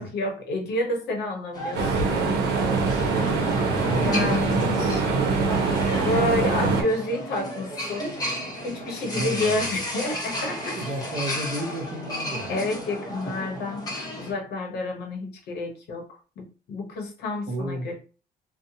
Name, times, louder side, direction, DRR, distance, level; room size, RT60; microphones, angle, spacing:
voice 1, 0.0-2.2 4.0-5.0 6.0-8.1 8.6-10.8 12.5-13.9 14.2-16.0 16.4-18.0, left 2 dB, 70° left, 2 dB, 0.8 m, -29 dB
sound 1, 1.5-14.3, equal, 20° left, 0.9 m, -33 dB
sound 2, 1.7-6.8, right 4 dB, 70° right, 0.7 m, -23 dB
voice 2, 3.5-4.8 9.1-9.8 10.8-12.5 17.5-17.9, equal, 35° right, 0 dB, 1.0 m, -32 dB
2.7 x 2.1 x 2.7 m, 0.36 s
cardioid pair, 110°, 17 cm